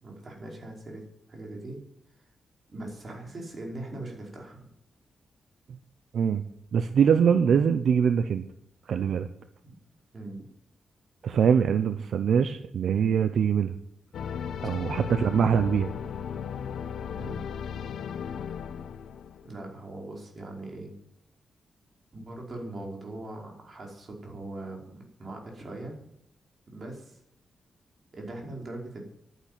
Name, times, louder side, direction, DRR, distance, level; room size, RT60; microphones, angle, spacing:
voice 1, 0.0-1.0 1.3-1.8 2.7-4.7 9.6-9.7 10.1-10.4 14.7-14.9 17.1-17.4 19.4-20.9 22.1-25.9 26.7-27.2 28.1-29.0, right 2 dB, 40° right, 1 dB, 5.1 m, -40 dB
voice 2, 6.7-8.4 8.9-9.3 11.2-13.7 14.6-15.9, right 7 dB, 75° right, 10 dB, 0.8 m, -23 dB
sound 1, 14.1-19.7, left 7 dB, 85° left, 0.9 m, -36 dB
11.0 x 10.0 x 9.0 m, 0.73 s
cardioid pair, 105°, 0 cm